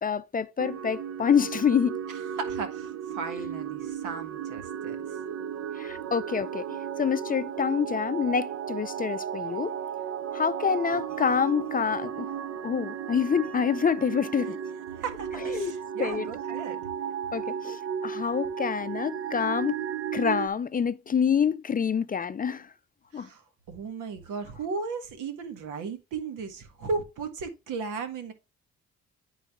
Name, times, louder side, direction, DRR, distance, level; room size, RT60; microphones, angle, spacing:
voice 1, 0.0-2.0 5.7-6.7 7.0-9.8 10.3-12.3 12.6-14.6 15.5-16.3 17.3-19.8 20.1-22.7 23.1-23.3, left 7 dB, 30° left, 0.4 m, -27 dB
sound 1, 0.6-20.5, right 8 dB, 55° right, 0.6 m, -34 dB
voice 2, 2.1-5.2 15.0-16.9 23.1-28.3, right 4 dB, 85° right, 1.7 m, -36 dB
10.5 x 4.0 x 3.6 m
cardioid pair, 90°, 30 cm